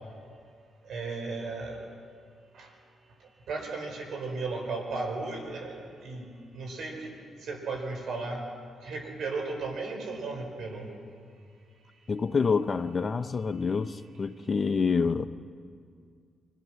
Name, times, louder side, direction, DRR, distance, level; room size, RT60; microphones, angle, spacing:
voice 1, 0.8-1.8 2.5-2.7 3.5-7.1 7.4-8.4 8.8-10.9, right 3 dB, 70° right, 5.1 m, -35 dB
voice 2, 12.1-15.3, left 5 dB, 40° left, 0.8 m, -27 dB
24.5 x 17.5 x 6.3 m
supercardioid pair, 60°, 0 cm